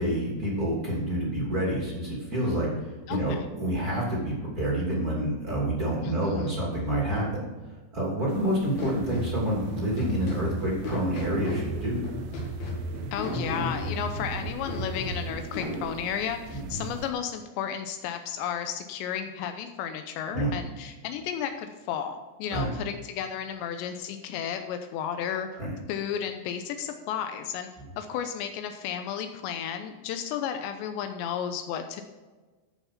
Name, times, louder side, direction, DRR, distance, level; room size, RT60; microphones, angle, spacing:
voice 1, 0.0-2.7 3.1-7.4 7.9-12.0 16.5-16.9 20.3-20.5 22.5-22.7 25.6-25.7, right 1 dB, 25° right, -4 dB, 2.3 m, -28 dB
voice 2, 3.1-3.5 6.0-6.6 13.1-25.5 25.9-27.7 28.0-32.0, left 8 dB, 90° left, 7 dB, 2.6 m, -33 dB
sound 1, 8.3-17.1, right 6 dB, 80° right, 3.6 m, -45 dB
sound 2, 8.8-15.8, equal, 55° left, 3.4 m, -33 dB
13.5 x 5.7 x 5.9 m, 1.3 s
omnidirectional pair, 5.9 m